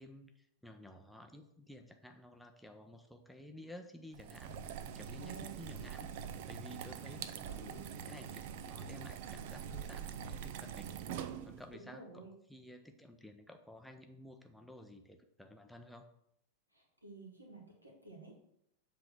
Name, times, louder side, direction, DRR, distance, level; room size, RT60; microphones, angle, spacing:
voice 1, 0.0-4.6 5.0-6.1 6.5-7.7 8.0-11.0 11.4-16.1, left 1 dB, ahead, 4 dB, 0.6 m, -53 dB
sound 1, 4.1-11.7, right 8 dB, 50° right, 0.5 m, -44 dB
voice 2, 5.2-5.5 7.4-7.9 11.8-12.3 16.7-18.3, right 4 dB, 85° right, -1 dB, 1.9 m, -51 dB
7.6 x 3.4 x 6.0 m, 0.75 s
figure-of-eight pair, 90°, 0 cm